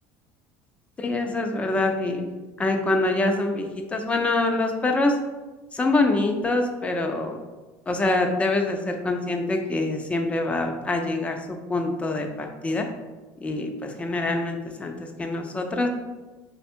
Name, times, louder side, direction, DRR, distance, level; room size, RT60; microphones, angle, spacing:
voice 1, 1.0-2.3 2.6-5.2 5.7-7.4 7.9-12.9 13.4-15.9, left 2 dB, 15° left, 4 dB, 0.5 m, -25 dB
3.4 x 2.2 x 4.3 m, 1.2 s
supercardioid pair, 115°, 8 cm